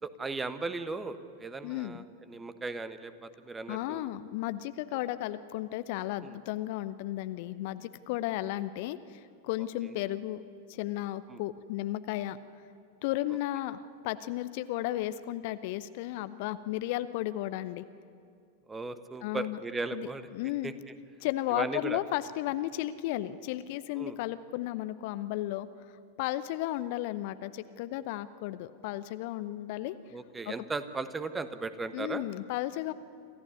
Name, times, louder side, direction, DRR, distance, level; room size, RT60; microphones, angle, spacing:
voice 1, 0.0-4.1 6.2-6.4 9.8-9.9 11.3-11.4 18.7-20.3 20.6-20.9 21.5-22.0 23.9-24.2 30.1-32.2, right 3 dB, 15° right, 11 dB, 1.2 m, -37 dB
voice 2, 1.6-2.0 3.7-10.4 10.7-12.4 13.0-17.9 19.2-19.6 19.9-20.7 21.2-25.7 26.2-30.0 30.5-30.6 31.9-32.9, left 15 dB, 50° left, 14 dB, 0.7 m, -34 dB
26.5 x 14.5 x 9.6 m, 2.4 s
figure-of-eight pair, 90°, 0 cm